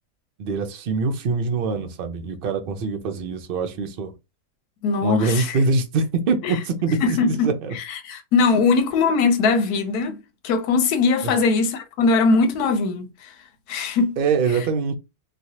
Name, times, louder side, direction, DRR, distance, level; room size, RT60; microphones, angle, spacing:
voice 1, 0.4-4.1 5.0-7.7 14.2-14.9, right 4 dB, 70° right, 0.5 m, -24 dB
voice 2, 4.8-5.6 6.4-6.5 7.0-10.2 10.4-13.3 13.7-14.2, left 4 dB, 85° left, 1.2 m, -21 dB
3.1 x 2.3 x 2.7 m
omnidirectional pair, 1.6 m